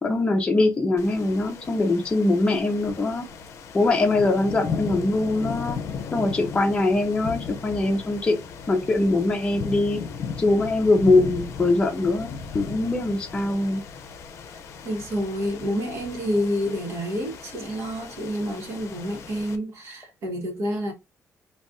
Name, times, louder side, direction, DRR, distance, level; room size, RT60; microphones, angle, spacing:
voice 1, 0.0-3.3 3.7-5.8 6.1-8.4 8.7-10.0 10.4-13.8, left 2 dB, 20° left, 0.6 m, -22 dB
sound 1, 1.0-19.6, left 6 dB, 65° left, 0.5 m, -36 dB
voice 2, 14.8-20.9, equal, 65° right, 1.1 m, -28 dB
2.5 x 2.3 x 3.5 m
cardioid pair, 145°, 5 cm